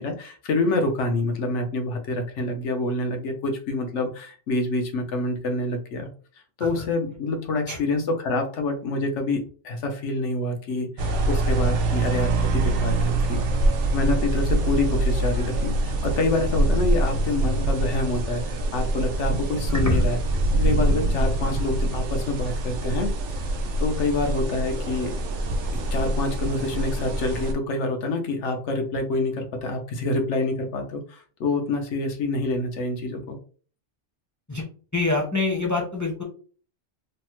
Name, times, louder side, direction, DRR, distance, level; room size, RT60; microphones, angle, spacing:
voice 1, 0.0-6.1 6.6-13.4 13.9-20.2 20.5-23.1 23.8-25.2 25.7-33.4, left 2 dB, 85° left, 4 dB, 1.0 m, -27 dB
sound 1, 11.0-27.5, right 2 dB, 85° right, 0.9 m, -24 dB
voice 2, 19.7-20.1 34.5-34.7 34.9-36.2, left 3 dB, 20° left, -1 dB, 0.5 m, -25 dB
3.2 x 2.0 x 2.9 m, 0.41 s
omnidirectional pair, 1.2 m